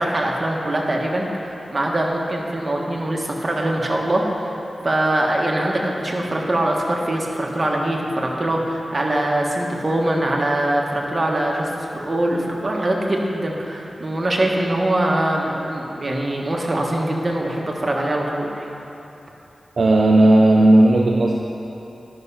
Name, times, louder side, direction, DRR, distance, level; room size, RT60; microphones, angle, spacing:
voice 1, 0.0-4.5 4.8-18.7, right 1 dB, 40° right, -1 dB, 1.3 m, -23 dB
voice 2, 19.8-21.3, right 1 dB, 65° right, -1 dB, 0.6 m, -14 dB
10.5 x 5.7 x 5.6 m, 3.0 s
cardioid pair, 65°, 0 cm